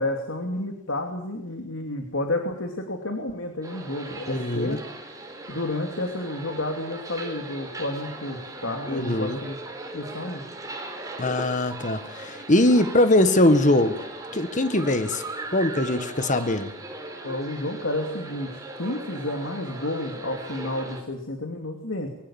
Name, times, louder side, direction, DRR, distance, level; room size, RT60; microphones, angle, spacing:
voice 1, 0.0-4.8 5.5-9.6 9.9-10.4 17.2-22.1, left 1 dB, 85° left, 4 dB, 2.9 m, -31 dB
sound 1, 3.6-21.0, right 2 dB, 20° right, 4.0 m, -39 dB
voice 2, 4.3-4.8 8.9-9.4 11.2-14.0 14.3-15.2 15.5-16.7, left 1 dB, 40° left, 9 dB, 1.7 m, -21 dB
24.5 x 22.5 x 7.3 m, 0.80 s
head